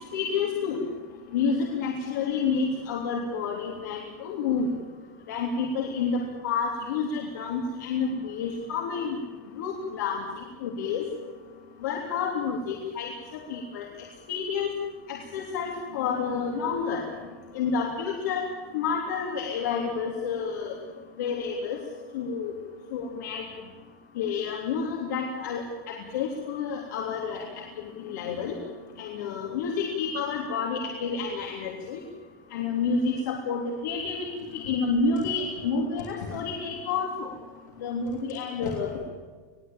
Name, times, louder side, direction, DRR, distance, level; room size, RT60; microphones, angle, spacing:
voice 1, 0.1-0.8 1.3-4.7 5.3-9.2 9.5-10.3 10.6-11.0 11.8-13.1 13.5-13.9 14.3-14.7 15.1-17.0 17.5-18.5 18.7-20.7 21.2-21.8 22.1-22.5 22.9-23.4 24.2-27.5 28.1-28.6 29.0-32.0 32.5-34.3 34.5-37.3 37.8-38.9, left 5 dB, 80° left, 0 dB, 3.3 m, -29 dB
21.0 x 17.0 x 8.9 m, 1.4 s
supercardioid pair, 165°, 10 cm